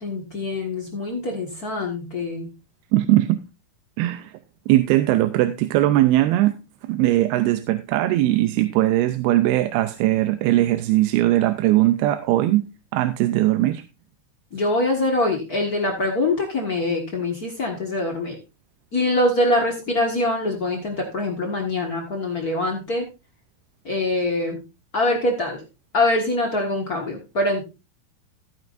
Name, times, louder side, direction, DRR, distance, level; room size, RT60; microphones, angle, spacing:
voice 1, 0.0-2.5 14.5-18.3 18.9-23.1 23.8-24.6 24.9-25.6 25.9-27.6, left 2 dB, 70° left, 0 dB, 0.8 m, -24 dB
voice 2, 2.9-3.4 4.0-4.3 4.7-6.6 6.9-12.6 12.9-13.8, right 15 dB, 85° right, 10 dB, 2.5 m, -19 dB
14.5 x 9.3 x 2.5 m, 0.27 s
omnidirectional pair, 4.5 m